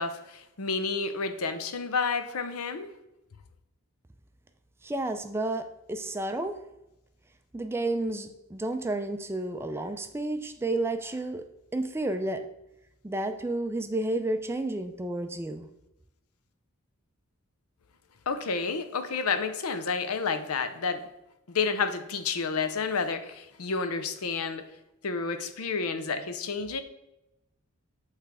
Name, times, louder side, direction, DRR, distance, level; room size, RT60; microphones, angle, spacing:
voice 1, 0.0-2.9 18.3-21.0 21.5-24.7 25.0-26.8, left 5 dB, 85° left, 0.6 m, -30 dB
voice 2, 4.8-6.5 7.5-11.5 11.7-12.5 13.0-15.7, right 2 dB, 10° right, 0.3 m, -31 dB
8.1 x 3.3 x 4.7 m
head